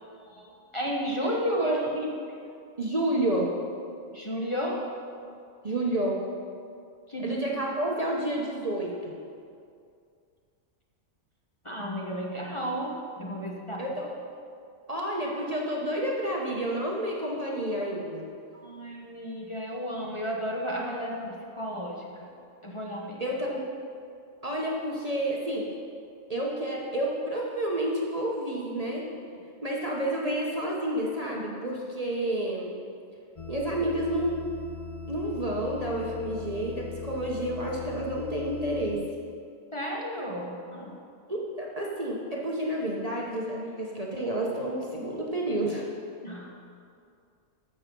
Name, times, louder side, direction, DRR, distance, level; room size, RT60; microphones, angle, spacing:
voice 1, 0.0-1.8 4.1-4.8 7.1-7.3 11.6-13.8 18.5-22.3 22.6-23.2 39.7-41.0 46.2-46.5, equal, 25° left, -3 dB, 1.3 m, -33 dB
voice 2, 1.6-2.1 2.8-3.5 5.6-6.2 7.2-9.1 13.8-14.1 14.9-18.3 23.2-23.6 24.4-25.6 26.3-29.1 29.6-32.8 33.5-34.4 35.1-39.0 41.3-45.9, right 1 dB, 30° right, -3 dB, 1.2 m, -30 dB
sound 1, 33.3-39.0, left 5 dB, 40° left, 0.5 m, -40 dB
14.0 x 6.6 x 5.3 m, 2.4 s
omnidirectional pair, 1.4 m